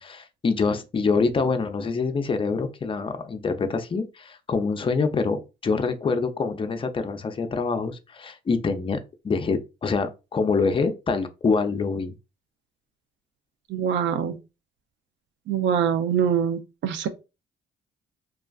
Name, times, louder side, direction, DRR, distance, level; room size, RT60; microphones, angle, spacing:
voice 1, 0.0-9.0 9.2-12.2, left 4 dB, 25° left, 0.4 m, -25 dB
voice 2, 13.7-14.4 15.5-17.1, right 8 dB, 70° right, 0.4 m, -24 dB
2.4 x 2.3 x 2.3 m
cardioid pair, 90°, 20 cm